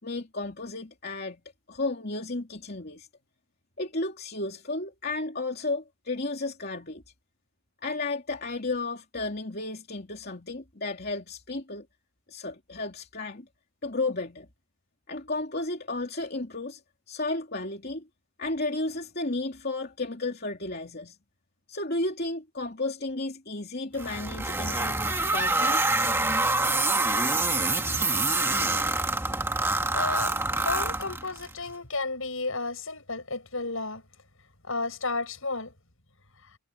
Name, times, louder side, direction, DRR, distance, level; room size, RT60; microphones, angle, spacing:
voice 1, 0.0-1.4 1.7-3.1 3.8-7.0 7.8-11.8 12.3-13.4 13.8-14.5 15.1-16.8 17.1-18.0 18.4-21.2 21.7-25.0 25.3-25.8, left 2 dB, 45° left, 3.0 m, -33 dB
sound 1, 24.0-31.5, right 2 dB, 10° right, 1.9 m, -26 dB
voice 2, 29.7-34.0 34.7-35.7, left 3 dB, 65° left, 6.7 m, -33 dB
head